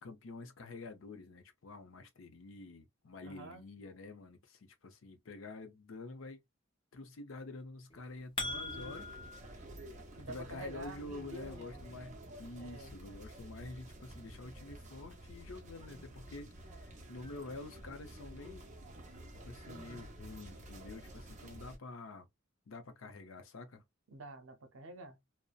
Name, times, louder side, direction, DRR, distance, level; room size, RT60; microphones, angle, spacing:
voice 1, 0.0-6.4 6.9-9.1 10.3-18.7 19.5-22.3 22.7-23.8, left 2 dB, 75° left, 0.6 m, -48 dB
voice 2, 3.2-3.6 10.1-11.9 12.6-13.0 24.1-25.2, right 2 dB, 80° right, 0.6 m, -48 dB
sound 1, 7.9-9.4, left 2 dB, 25° left, 0.5 m, -40 dB
sound 2, 8.4-21.8, right 1 dB, 35° right, 0.6 m, -51 dB
2.6 x 2.0 x 2.3 m
head